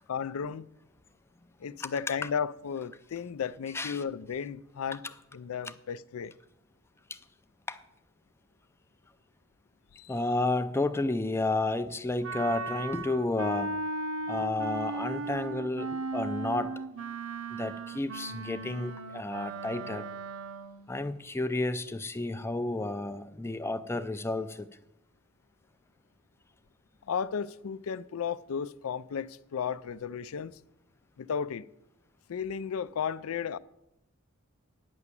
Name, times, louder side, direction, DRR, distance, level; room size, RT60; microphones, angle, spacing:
voice 1, 0.1-0.7 1.6-5.0 5.3-6.4 10.0-10.2 27.1-30.6 31.2-31.6 32.3-33.6, left 7 dB, 85° left, 0.4 m, -34 dB
voice 2, 10.1-13.8 14.3-16.7 17.5-20.1 20.9-24.7, left 2 dB, 10° left, 0.4 m, -31 dB
Wind instrument woodwind instrument, 12.2-20.9, right 3 dB, 75° right, 0.7 m, -36 dB
9.7 x 6.0 x 8.2 m
head